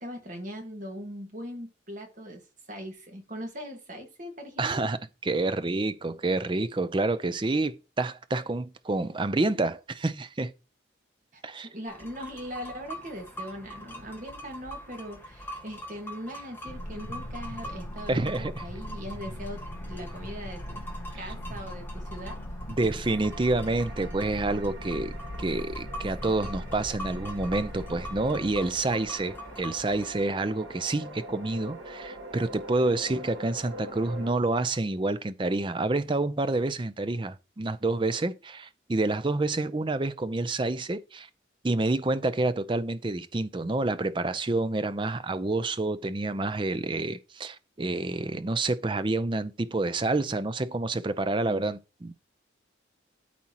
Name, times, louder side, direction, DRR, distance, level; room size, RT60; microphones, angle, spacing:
voice 1, 0.0-2.4 2.7-4.8 11.3-19.6 19.9-20.6 21.1-22.4 51.5-51.6, equal, 40° right, 1.7 m, -40 dB
voice 2, 4.6-10.5 11.4-11.7 18.1-18.5 22.7-41.3 41.6-52.1, right 2 dB, 25° right, 0.5 m, -28 dB
sound 1, 11.9-30.2, equal, 10° left, 1.4 m, -44 dB
sound 2, 16.7-29.9, equal, 70° left, 1.0 m, -40 dB
sound 3, 23.1-34.3, right 1 dB, 80° right, 1.8 m, -44 dB
12.5 x 4.3 x 2.9 m
head